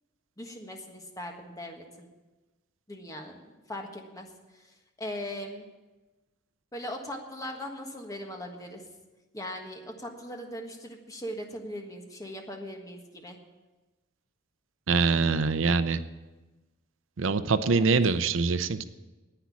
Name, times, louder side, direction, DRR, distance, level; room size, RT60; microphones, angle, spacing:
voice 1, 0.4-2.1 2.9-3.4 3.7-4.3 4.5-5.7 6.7-8.8 9.3-13.4 17.7-17.9, left 1 dB, 15° left, 2 dB, 1.5 m, -39 dB
voice 2, 14.9-16.0 17.2-18.8, right 4 dB, 75° right, 12 dB, 0.6 m, -24 dB
10.0 x 9.4 x 8.5 m, 1.2 s
head